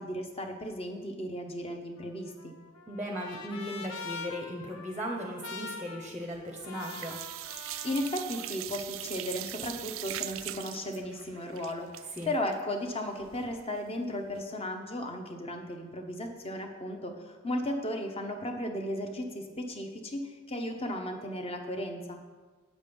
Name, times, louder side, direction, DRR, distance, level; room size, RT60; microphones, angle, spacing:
voice 1, 0.0-2.5 7.8-22.2, left 1 dB, 25° left, 4 dB, 0.9 m, -35 dB
Trumpet, 2.0-8.3, left 4 dB, 85° left, 0.9 m, -44 dB
voice 2, 2.9-7.2 12.1-12.3, equal, 10° right, 1 dB, 0.8 m, -37 dB
sound 1, 6.1-6.5 6.8-13.6 14.0-14.1 14.4-14.5, right 15 dB, 65° right, 0.3 m, -41 dB
8.3 x 7.5 x 5.3 m, 1.4 s
head